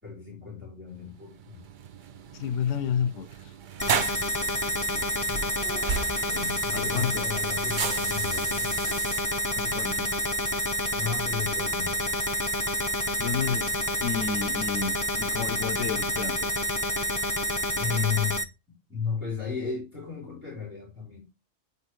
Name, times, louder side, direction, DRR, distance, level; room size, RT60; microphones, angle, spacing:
voice 1, 0.0-1.6 3.9-4.3 5.2-5.9 6.6-9.0 10.9-12.0 17.8-18.4 18.9-21.2, left 6 dB, 10° right, 4.5 m, -34 dB
sound 1, 1.0-9.2, right 7 dB, 55° right, 0.6 m, -35 dB
voice 2, 2.3-3.5 5.9-7.3 9.5-10.1 13.2-16.7, left 7 dB, 90° left, 1.0 m, -32 dB
sound 2, 3.8-18.4, equal, 20° left, 0.6 m, -28 dB
9.3 x 5.4 x 3.1 m
omnidirectional pair, 1.3 m